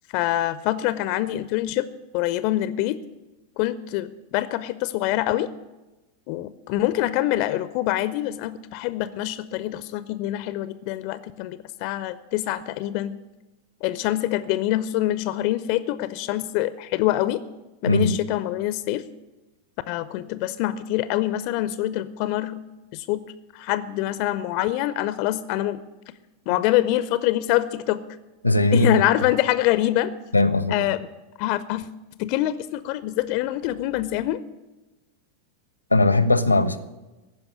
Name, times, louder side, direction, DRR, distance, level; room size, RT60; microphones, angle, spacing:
voice 1, 0.1-1.9 2.1-3.0 3.6-5.5 6.3-13.2 13.8-17.4 17.8-19.0 19.9-22.6 22.9-23.2 23.5-25.8 26.5-28.0 28.7-30.1 30.7-31.0 31.4-31.9 32.2-34.4, left 15 dB, 45° left, 15 dB, 0.4 m, -25 dB
voice 2, 17.8-18.1 28.4-29.0 30.3-30.8 35.9-36.8, left 2 dB, 85° left, 14 dB, 0.7 m, -19 dB
14.5 x 5.4 x 9.8 m, 1.1 s
figure-of-eight pair, 90°, 0 cm